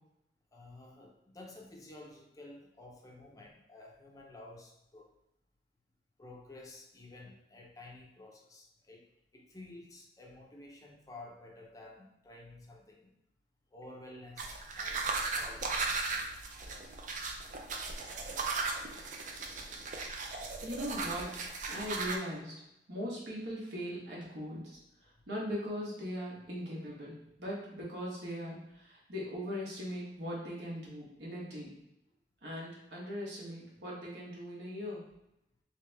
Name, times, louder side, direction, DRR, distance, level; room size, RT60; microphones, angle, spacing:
voice 1, 0.5-5.1 6.2-9.0 9.3-13.1 13.7-15.8, left 2 dB, 20° left, -1 dB, 0.5 m, -52 dB
sound 1, 14.4-22.2, right 4 dB, 45° right, 0.4 m, -37 dB
voice 2, 20.6-21.3 21.7-22.5 22.9-31.7 32.4-35.0, equal, 70° right, -4 dB, 1.2 m, -40 dB
3.3 x 3.0 x 3.3 m, 0.84 s
head